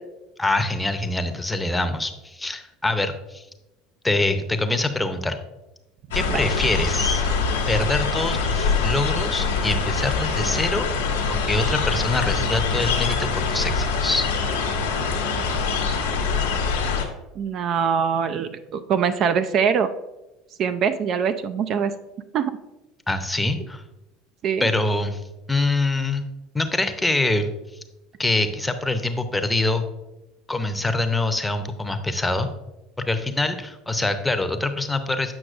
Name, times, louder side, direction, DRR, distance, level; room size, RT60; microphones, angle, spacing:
voice 1, 0.4-3.4 4.0-5.4 6.1-7.2 7.7-10.9 11.5-14.3 23.1-23.8 24.6-25.2 25.5-26.2 26.5-27.5 28.2-29.8 30.5-32.5 33.0-35.3, left 2 dB, 10° left, 8 dB, 0.7 m, -24 dB
sound 1, 6.1-17.0, left 4 dB, 85° left, 0.9 m, -24 dB
voice 2, 17.4-19.9 20.6-21.9 22.3-22.5 24.4-24.7, right 7 dB, 50° right, 10 dB, 0.4 m, -23 dB
7.8 x 5.9 x 2.5 m, 0.99 s
hypercardioid pair, 75°, 0 cm